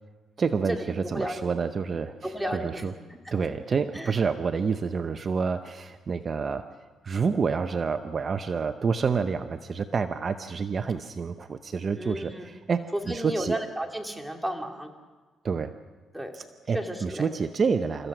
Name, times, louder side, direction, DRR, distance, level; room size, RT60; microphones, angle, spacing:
voice 1, 0.4-2.9 3.3-6.7 7.0-13.6 15.4-15.8 16.3-18.1, right 5 dB, 40° right, 9 dB, 0.8 m, -28 dB
voice 2, 1.1-1.5 2.2-2.8 3.3-3.4 4.0-4.1 12.0-12.4 13.1-14.9 16.1-16.3 16.7-17.3, right 1 dB, 5° right, 3 dB, 2.5 m, -33 dB
29.5 x 15.0 x 6.1 m, 1.4 s
cardioid pair, 90°, 0 cm